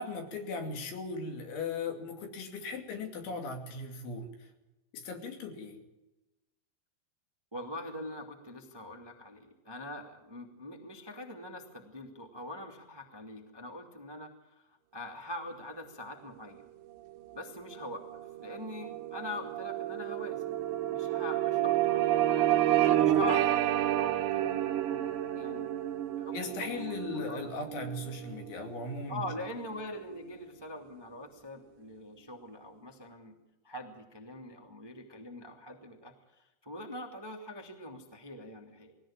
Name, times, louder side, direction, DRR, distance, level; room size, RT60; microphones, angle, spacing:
voice 1, 0.0-4.3 4.9-5.8 26.3-29.2, left 3 dB, 80° left, 4 dB, 5.1 m, -38 dB
voice 2, 7.5-16.6 17.3-18.0 18.4-20.6 20.9-22.6 23.0-25.7 26.1-27.4 29.1-33.4 33.6-38.9, left 1 dB, 10° right, 2 dB, 1.1 m, -43 dB
sound 1, 17.2-29.7, right 12 dB, 75° right, 3.3 m, -30 dB
21.5 x 16.5 x 8.9 m, 1.0 s
omnidirectional pair, 5.4 m